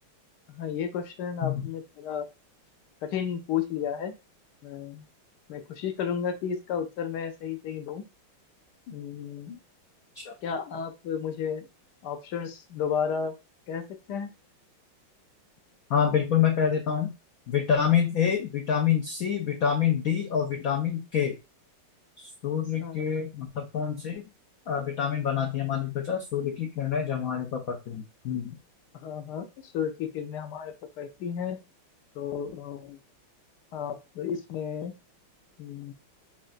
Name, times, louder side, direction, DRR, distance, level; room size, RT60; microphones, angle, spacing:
voice 1, 0.5-2.3 3.0-4.1 4.6-5.0 5.5-8.0 8.9-9.6 10.4-11.7 12.0-13.4 13.7-14.3 22.8-23.0 28.9-31.6 32.1-33.0 33.7-34.9 35.6-35.9, left 7 dB, 70° left, 7 dB, 1.0 m, -33 dB
voice 2, 15.9-17.1 17.5-21.4 22.2-24.2 24.7-28.6, left 8 dB, 85° left, 3 dB, 0.7 m, -27 dB
5.5 x 2.5 x 2.5 m, 0.26 s
omnidirectional pair, 2.3 m